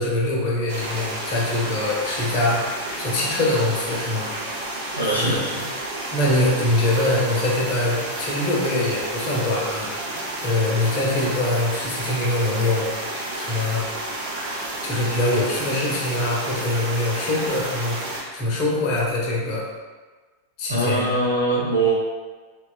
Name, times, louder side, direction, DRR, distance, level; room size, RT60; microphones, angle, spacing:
voice 1, 0.0-4.3 5.1-5.4 6.1-9.9 10.4-12.9 13.3-13.9 14.6-18.0 18.3-19.6 20.6-21.0, left 2 dB, 40° left, -4 dB, 0.6 m, -23 dB
sound 1, 0.7-18.2, right 1 dB, 50° right, 0.6 m, -31 dB
voice 2, 4.9-5.6 20.7-21.9, right 2 dB, 85° left, -6 dB, 0.6 m, -22 dB
2.9 x 2.2 x 2.3 m, 1.4 s
figure-of-eight pair, 90°, 0 cm